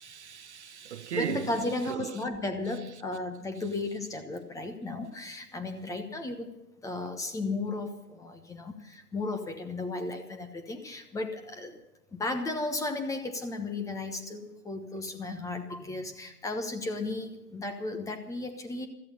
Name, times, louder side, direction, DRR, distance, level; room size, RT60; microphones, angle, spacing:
voice 1, 0.0-2.2, right 10 dB, 50° right, 0.5 m, -37 dB
voice 2, 1.1-6.5 6.8-11.7 12.1-18.9, left 2 dB, 5° left, 1.2 m, -34 dB
16.0 x 14.0 x 5.6 m
figure-of-eight pair, 120°, 45 cm